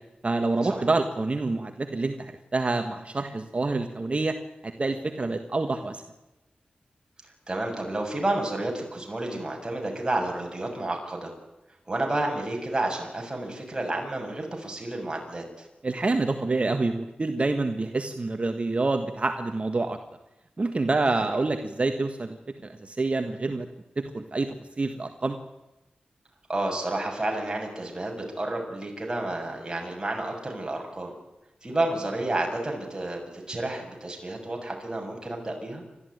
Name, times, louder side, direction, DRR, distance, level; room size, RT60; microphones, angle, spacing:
voice 1, 0.2-4.4 4.6-6.0 15.8-20.0 20.6-22.4 22.6-23.7 24.0-25.4, right 3 dB, 45° right, 6 dB, 1.6 m, -27 dB
voice 2, 7.5-11.3 11.9-15.7 21.1-21.3 26.5-31.1 31.6-35.8, right 2 dB, 25° right, 1 dB, 7.1 m, -30 dB
29.0 x 13.5 x 9.4 m, 0.99 s
wide cardioid pair, 70°, 3 cm